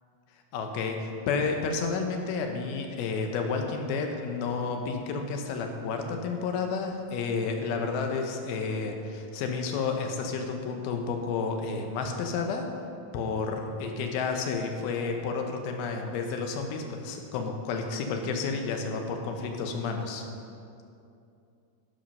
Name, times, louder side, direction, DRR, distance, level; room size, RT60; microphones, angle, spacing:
voice 1, 0.5-12.7 13.1-20.2, left 4 dB, 75° left, 4 dB, 2.8 m, -31 dB
11.0 x 7.8 x 5.5 m, 2.5 s
omnidirectional pair, 4.5 m